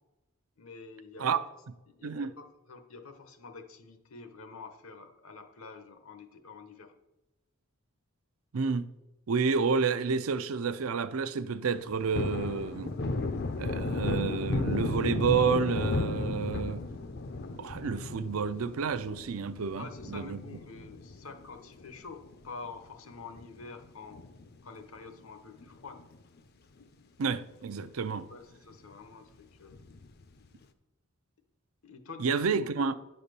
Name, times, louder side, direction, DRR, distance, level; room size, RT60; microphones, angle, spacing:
voice 1, 0.6-1.6 1.9-6.9 19.7-24.2 24.6-26.0 28.3-29.8 31.8-32.7, left 4 dB, 75° left, 1.0 m, -47 dB
voice 2, 8.5-8.9 9.3-12.9 13.6-16.8 17.6-20.4 27.2-28.3 32.2-32.9, right 5 dB, 75° right, 0.5 m, -30 dB
Thunder, 11.7-22.5 22.8-22.9 23.3-24.8 25.1-25.2 25.6-26.4 26.8-26.9 27.2-27.3 29.7-30.2, left 2 dB, 50° left, 0.6 m, -34 dB
10.0 x 4.2 x 6.7 m
head